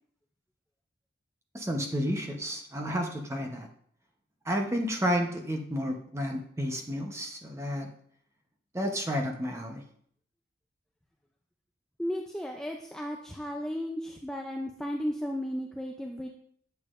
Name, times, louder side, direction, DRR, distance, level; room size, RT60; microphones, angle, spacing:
voice 1, 1.5-3.7 4.5-7.9 8.7-9.8, equal, 15° right, 3 dB, 0.8 m, -31 dB
voice 2, 12.0-16.3, equal, 5° left, 1 dB, 0.4 m, -34 dB
8.3 x 6.9 x 2.5 m, 0.64 s
head